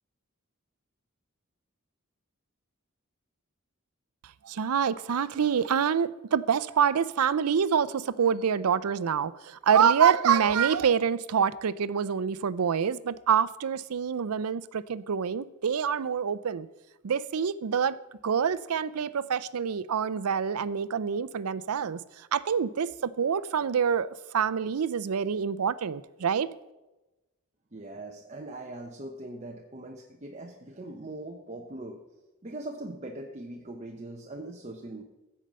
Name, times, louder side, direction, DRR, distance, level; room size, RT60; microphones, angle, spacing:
voice 1, 4.4-16.7 17.0-18.0 18.2-22.0 22.3-24.1 24.3-26.5, right 7 dB, 85° right, 0.5 m, -26 dB
voice 2, 27.7-32.0 32.4-35.0, right 2 dB, 30° right, 0.9 m, -41 dB
15.5 x 5.5 x 7.5 m
head